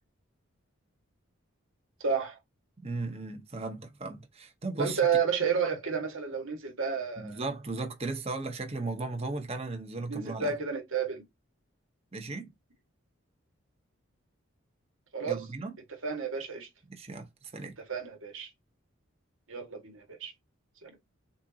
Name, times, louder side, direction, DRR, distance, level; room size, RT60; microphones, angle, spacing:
voice 1, 2.0-2.4 4.8-7.4 10.1-11.2 15.1-15.4 15.9-16.7 17.9-18.5 19.5-20.3 20.8-20.9, right 6 dB, 80° right, 1.8 m, -31 dB
voice 2, 2.8-5.0 7.2-10.5 12.1-12.5 15.2-15.7 16.9-17.7, right 3 dB, 30° right, 1.1 m, -36 dB
6.7 x 2.6 x 2.9 m
head